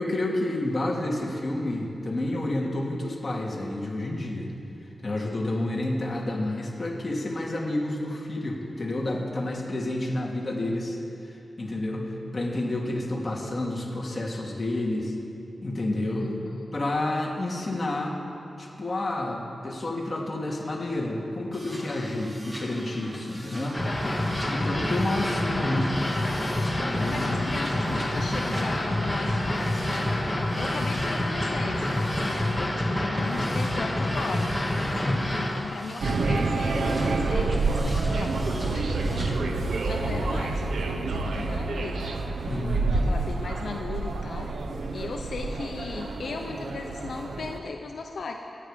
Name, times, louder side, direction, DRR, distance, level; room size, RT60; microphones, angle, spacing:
voice 1, 0.0-4.5 5.0-11.0 11.6-15.1 15.6-16.3 16.7-18.1 18.6-25.9 26.7-27.9 35.0-35.3 42.5-43.1, left 1 dB, 30° left, -3 dB, 2.5 m, -30 dB
voice 2, 16.2-16.7 27.1-34.5 35.0-39.6 39.8-42.5 42.9-44.5 44.9-48.3, left 4 dB, 75° left, 2 dB, 0.8 m, -37 dB
sound 1, 21.5-39.3, equal, 15° right, 1.8 m, -43 dB
sound 2, 23.7-35.5, left 1 dB, 5° left, 2.3 m, -27 dB
sound 3, 36.0-47.6, right 3 dB, 85° right, 1.0 m, -28 dB
25.0 x 9.4 x 5.2 m, 2.8 s
wide cardioid pair, 150°, 0 cm